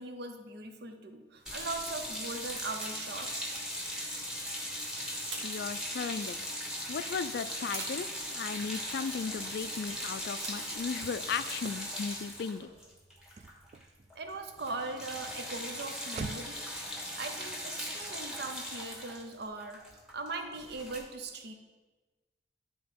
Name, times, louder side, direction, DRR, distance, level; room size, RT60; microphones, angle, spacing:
voice 1, 0.0-3.6 14.1-16.6 17.2-19.8 20.1-21.5, right 3 dB, 60° right, 6 dB, 0.8 m, -40 dB
sound 1, 1.3-12.6, right 3 dB, 90° right, 1.4 m, -50 dB
sound 2, 1.5-13.8 14.1-14.3 14.6-21.0, equal, 5° right, 1.2 m, -39 dB
voice 2, 5.4-6.6 6.9-12.7, left 6 dB, 60° left, 14 dB, 0.3 m, -36 dB
Car / Slam, 8.0-16.7, right 4 dB, 40° right, 0.3 m, -50 dB
11.0 x 3.9 x 5.1 m, 1.3 s
head